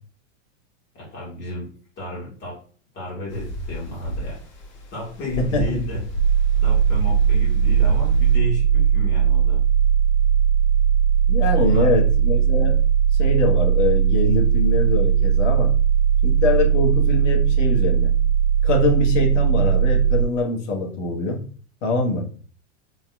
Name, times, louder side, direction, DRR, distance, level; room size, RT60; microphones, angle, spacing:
voice 1, 0.9-1.7 2.0-2.6 2.9-4.4 4.9-6.0 6.6-9.6 11.5-11.9, left 1 dB, 30° left, -6 dB, 2.0 m, -32 dB
sound 1, 3.3-8.4, left 1 dB, 45° left, 2.0 m, -31 dB
sound 2, 6.1-20.2, right 8 dB, 40° right, 1.1 m, -18 dB
voice 2, 11.3-12.8 13.2-15.7 16.2-18.1 18.6-21.4 21.8-22.3, left 3 dB, 80° left, 1 dB, 1.5 m, -23 dB
4.0 x 3.6 x 2.5 m, 0.42 s
supercardioid pair, 155°, 37 cm